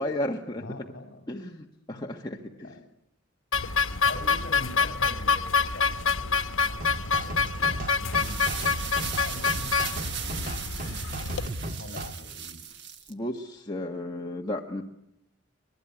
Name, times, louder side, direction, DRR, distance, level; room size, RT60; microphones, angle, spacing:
voice 1, 0.0-0.6 1.3-2.7 3.9-4.0 13.1-14.8, left 1 dB, 20° left, 1 dB, 1.5 m, -33 dB
voice 2, 0.5-1.4 1.9-2.9 3.6-6.3 6.6-10.6 11.1-12.6 12.9-13.1, left 1 dB, 50° left, 6 dB, 5.5 m, -44 dB
sound 1, 3.5-11.5, left 5 dB, 85° left, 1.1 m, -27 dB
sound 2, 6.8-12.1, right 1 dB, 45° right, 1.7 m, -36 dB
sound 3, 7.9-13.1, right 7 dB, 60° right, 1.6 m, -37 dB
25.5 x 20.5 x 9.9 m, 0.84 s
head